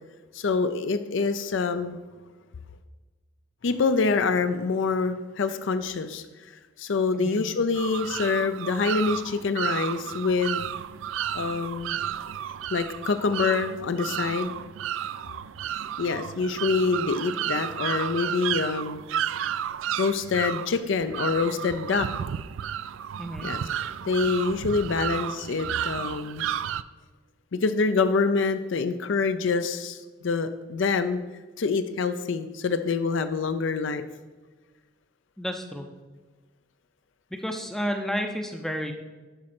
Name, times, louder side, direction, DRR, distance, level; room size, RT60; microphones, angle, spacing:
voice 1, 0.3-2.0 3.6-6.2 6.8-10.6 11.3-12.0 12.7-14.5 16.0-19.0 20.0-22.1 23.4-23.6 24.1-26.5 27.5-31.2 31.6-34.1, left 4 dB, 60° left, 10 dB, 0.5 m, -26 dB
sound 1, 7.7-26.8, right 10 dB, 65° right, 0.3 m, -32 dB
voice 2, 23.2-23.5 35.4-35.9 37.3-38.9, equal, ahead, 4 dB, 0.5 m, -31 dB
11.5 x 4.2 x 5.9 m, 1.3 s
head